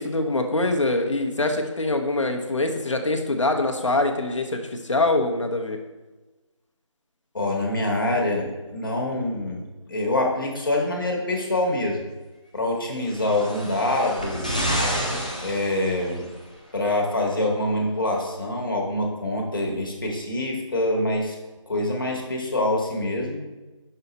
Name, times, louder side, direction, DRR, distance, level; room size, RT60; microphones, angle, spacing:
voice 1, 0.0-5.8, left 2 dB, 65° left, 4 dB, 1.0 m, -24 dB
voice 2, 7.3-12.0 12.5-14.6 15.4-16.3 16.7-21.4 21.7-23.4, left 1 dB, 40° left, -1 dB, 1.3 m, -25 dB
sound 1, 13.0-16.4 17.3-17.4, equal, 15° left, 0.4 m, -29 dB
5.7 x 5.6 x 4.1 m, 1.2 s
figure-of-eight pair, 170°, 17 cm